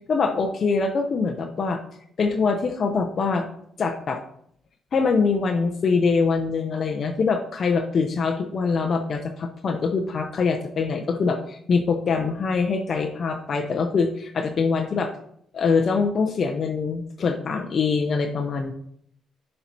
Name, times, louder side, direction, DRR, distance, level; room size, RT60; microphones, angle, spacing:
voice 1, 0.1-1.8 2.2-3.5 3.8-4.2 4.9-15.1 15.5-18.7, left 4 dB, 50° left, 4 dB, 0.6 m, -24 dB
10.0 x 4.3 x 2.8 m, 0.69 s
cardioid pair, 90°, 0 cm